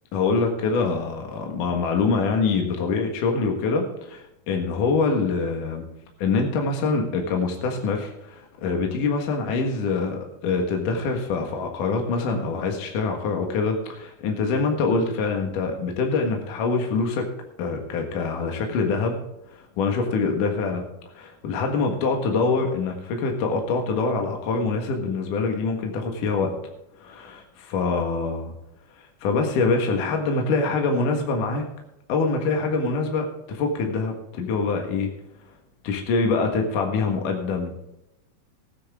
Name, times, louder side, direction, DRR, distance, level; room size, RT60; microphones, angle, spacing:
voice 1, 0.1-5.9 6.2-17.3 17.6-19.2 19.5-20.8 21.1-26.6 27.0-28.5 29.2-31.7 32.1-35.1 35.8-37.8, left 4 dB, 60° left, 3 dB, 3.0 m, -25 dB
16.0 x 10.0 x 3.6 m, 0.87 s
omnidirectional pair, 4.4 m